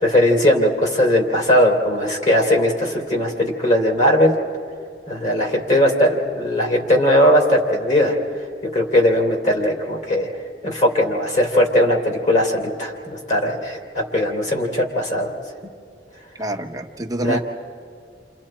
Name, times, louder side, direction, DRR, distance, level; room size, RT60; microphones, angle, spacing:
voice 1, 0.0-4.4 5.1-8.1 8.7-10.3 10.6-15.3 17.2-17.4, left 1 dB, 40° left, 0 dB, 3.0 m, -18 dB
voice 2, 16.4-17.4, right 1 dB, 20° right, 3 dB, 1.1 m, -26 dB
30.0 x 26.5 x 4.4 m, 2.4 s
head